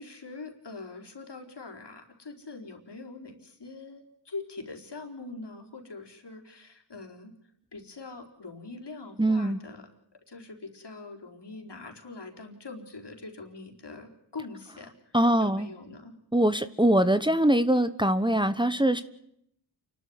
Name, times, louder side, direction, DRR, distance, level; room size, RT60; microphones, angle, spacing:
voice 1, 0.0-7.3 7.7-9.8 10.3-16.1, left 3 dB, 65° left, 4.5 m, -43 dB
voice 2, 9.2-9.6 15.1-15.7 16.3-19.0, right 1 dB, 10° right, 1.2 m, -23 dB
29.0 x 12.5 x 9.6 m
wide cardioid pair, 60°, 44 cm